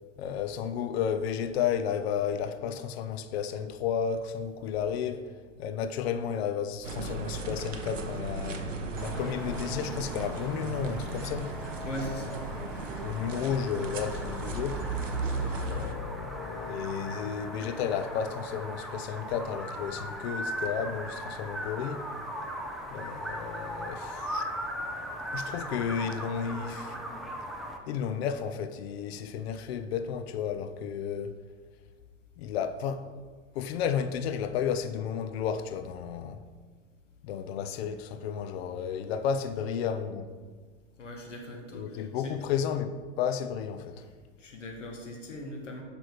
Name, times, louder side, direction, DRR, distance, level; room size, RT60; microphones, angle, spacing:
voice 1, 0.2-5.3 5.6-8.7 9.0-11.6 13.0-14.9 15.3-22.1 22.9-24.5 25.3-27.0 27.9-31.4 32.4-33.1 33.5-36.4 37.2-40.3 41.7-44.1, left 7 dB, 55° left, 0.6 m, -32 dB
sound 1, 6.8-15.9, right 3 dB, 90° right, 0.7 m, -35 dB
sound 2, 9.0-27.8, equal, ahead, 0.3 m, -39 dB
voice 2, 11.8-12.4 41.0-42.3 44.0-44.1 44.4-45.8, left 1 dB, 80° left, 1.4 m, -40 dB
6.1 x 5.0 x 4.8 m
figure-of-eight pair, 90°, 37 cm